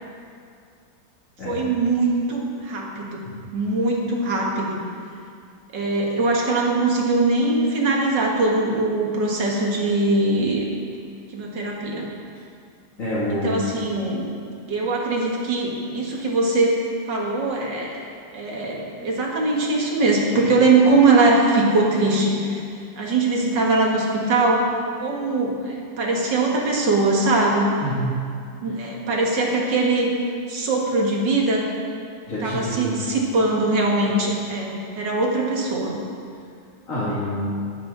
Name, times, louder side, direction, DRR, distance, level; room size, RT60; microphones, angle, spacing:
voice 1, 1.4-3.2 3.5-4.8 5.7-10.7 11.3-12.1 13.3-14.3 14.7-16.8 17.1-17.9 18.3-22.6 22.9-24.6 25.0-27.7 28.6-30.1 30.5-31.7 32.4-36.0, right 2 dB, 80° right, -2 dB, 2.5 m, -21 dB
voice 2, 13.0-13.6 27.8-28.2 32.3-32.9 36.9-37.5, equal, 45° left, -11 dB, 3.1 m, -26 dB
20.0 x 8.3 x 4.1 m, 2.3 s
omnidirectional pair, 1.9 m